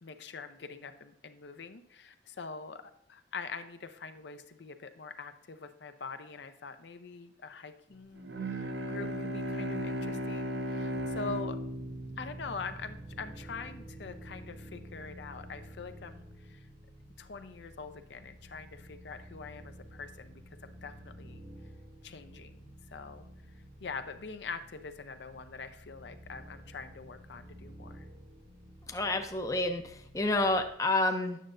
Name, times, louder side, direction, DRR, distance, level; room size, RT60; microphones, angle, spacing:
voice 1, 0.0-11.6 12.2-16.7 17.2-21.4 22.0-23.3 23.8-28.1, left 4 dB, 75° left, 9 dB, 0.5 m, -44 dB
Bowed string instrument, 8.2-13.5, equal, 70° right, 0.6 m, -36 dB
sound 1, 10.9-30.7, equal, 35° right, 0.8 m, -51 dB
voice 2, 28.9-31.4, left 2 dB, 20° left, 5 dB, 0.5 m, -29 dB
9.2 x 6.5 x 2.5 m, 0.75 s
head